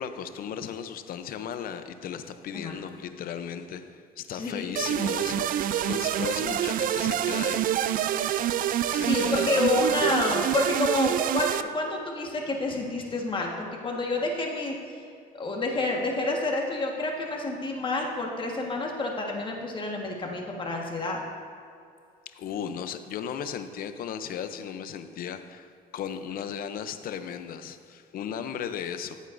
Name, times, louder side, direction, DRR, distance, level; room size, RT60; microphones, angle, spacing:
voice 1, 0.0-5.5 5.9-7.8 8.9-9.7 9.9-10.2 22.3-29.2, left 8 dB, 60° left, 9 dB, 0.6 m, -36 dB
voice 2, 4.3-4.8 9.0-14.7 15.3-21.2, left 2 dB, 30° left, 0 dB, 1.5 m, -29 dB
sound 1, 4.8-11.6, right 11 dB, 55° right, 0.4 m, -26 dB
14.0 x 8.1 x 2.6 m, 2.4 s
cardioid pair, 110°, 17 cm